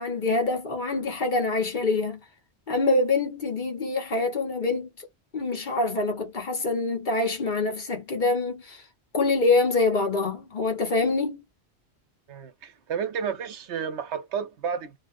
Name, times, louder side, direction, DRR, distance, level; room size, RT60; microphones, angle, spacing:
voice 1, 0.0-2.2 2.7-5.0 5.3-8.8 9.1-11.4, left 3 dB, 50° left, 1.0 m, -25 dB
voice 2, 12.3-15.0, right 7 dB, 85° right, 1.0 m, -31 dB
2.7 x 2.2 x 2.4 m
omnidirectional pair, 1.1 m